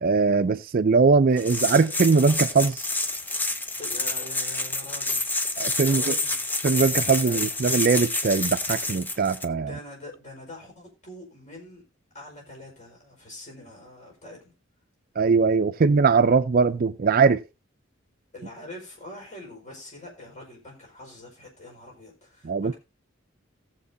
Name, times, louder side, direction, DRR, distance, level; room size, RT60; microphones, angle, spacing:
voice 1, 0.0-2.8 5.6-6.2 6.6-9.7 15.2-17.4 22.4-22.7, right 4 dB, 45° right, 0.4 m, -21 dB
sound 1, 1.4-9.5, left 2 dB, 10° left, 0.6 m, -28 dB
voice 2, 3.8-5.2 5.8-6.5 7.2-7.4 9.6-11.8 12.1-14.5 15.7-15.8 18.3-22.7, left 1 dB, 35° left, 4.7 m, -44 dB
18.0 x 7.3 x 2.7 m
head